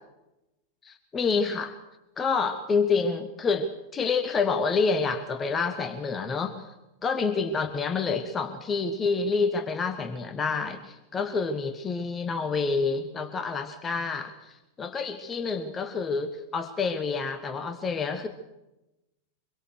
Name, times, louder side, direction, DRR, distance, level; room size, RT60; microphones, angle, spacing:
voice 1, 0.8-1.8 2.2-6.7 7.0-18.3, left 4 dB, 20° left, 8 dB, 1.5 m, -28 dB
25.0 x 22.5 x 6.5 m, 0.97 s
figure-of-eight pair, 90°, 0 cm